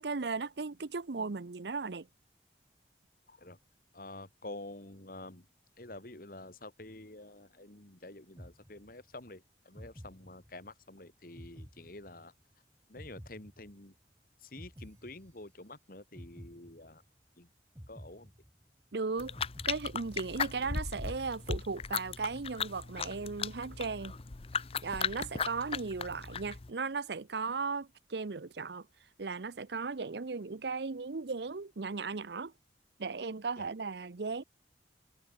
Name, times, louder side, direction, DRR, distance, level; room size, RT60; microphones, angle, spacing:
voice 1, 0.0-2.1 18.9-19.4 19.7-24.1 24.8-28.9 29.2-32.5 33.0-34.4, right 4 dB, 70° right, 0.7 m, -36 dB
voice 2, 3.9-5.5 5.8-12.3 12.9-13.9 14.4-17.0 17.4-17.5 17.9-18.3 33.6-33.7, left 2 dB, 55° left, 2.5 m, -48 dB
sound 1, 8.4-9.2 9.7-10.8 11.4-12.5 13.0-14.1 14.6-15.7 16.1-17.2 17.7-18.9 19.4-20.5 21.0-21.8, equal, 15° right, 4.2 m, -52 dB
sound 2, 19.2-26.7, left 6 dB, 35° left, 0.6 m, -37 dB
head